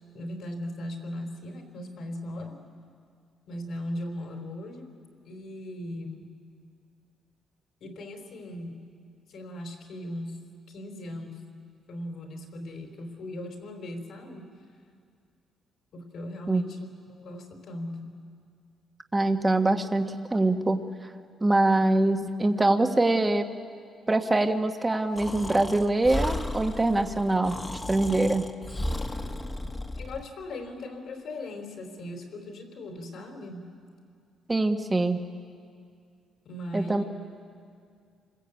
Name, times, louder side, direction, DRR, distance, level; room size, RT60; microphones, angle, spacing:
voice 1, 0.1-2.6 3.5-4.9 5.3-6.3 7.8-8.8 9.3-11.4 11.9-14.5 15.9-18.2 30.0-33.7 36.4-37.0, left 1 dB, 65° left, 4 dB, 4.3 m, -38 dB
voice 2, 19.1-20.8 21.4-23.5 24.1-27.6 27.9-28.5 34.5-35.2 36.7-37.0, right 2 dB, 20° right, 5 dB, 1.6 m, -24 dB
Breathing, 25.1-30.3, left 1 dB, 20° left, 1.7 m, -34 dB
27.5 x 21.0 x 8.6 m, 2.2 s
cardioid pair, 90°, 0 cm